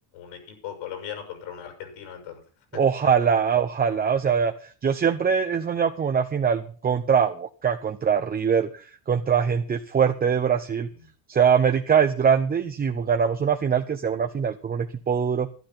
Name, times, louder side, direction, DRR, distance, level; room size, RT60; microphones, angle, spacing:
voice 1, 0.1-2.4 2.7-2.8, left 9 dB, 80° left, 5 dB, 6.6 m, -38 dB
voice 2, 2.7-10.9 11.3-15.5, right 7 dB, 20° right, 8 dB, 0.6 m, -23 dB
12.0 x 11.0 x 5.7 m, 0.41 s
cardioid pair, 135°, 47 cm